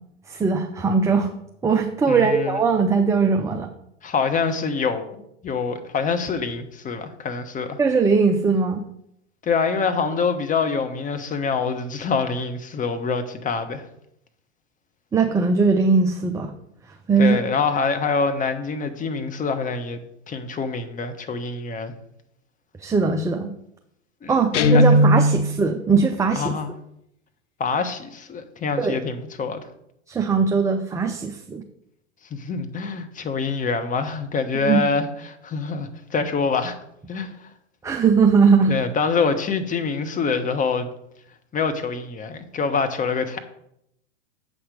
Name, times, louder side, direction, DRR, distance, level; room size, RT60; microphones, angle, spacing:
voice 1, 0.3-1.3 1.6-3.7 7.8-8.8 15.1-16.5 17.1-17.4 22.8-23.5 24.3-26.5 28.8-29.0 30.1-31.6 34.6-34.8 37.8-38.7, right 5 dB, 10° right, 4 dB, 0.5 m, -20 dB
voice 2, 2.1-2.6 4.0-5.0 5.4-7.8 9.4-13.9 17.2-20.0 20.3-21.9 24.2-24.4 24.7-24.8 26.3-26.7 27.6-29.7 32.3-36.8 37.1-37.5 38.7-40.9 41.5-43.4, left 5 dB, 20° left, 8 dB, 1.1 m, -25 dB
Guitar, 24.5-25.7, equal, 80° left, 0.7 m, -17 dB
7.8 x 5.9 x 5.1 m, 0.76 s
hypercardioid pair, 95°, 36 cm